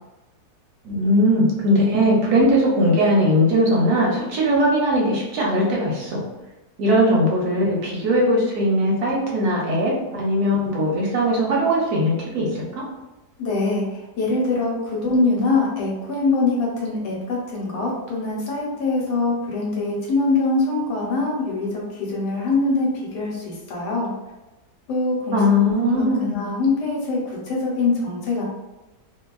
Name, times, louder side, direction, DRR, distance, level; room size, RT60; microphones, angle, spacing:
voice 1, 0.8-6.2 6.8-12.8 25.3-26.3, equal, 70° right, -3 dB, 1.0 m, -19 dB
voice 2, 13.4-24.1 24.9-28.4, left 3 dB, 75° left, -3 dB, 1.3 m, -23 dB
2.9 x 2.2 x 2.2 m, 1.0 s
omnidirectional pair, 1.9 m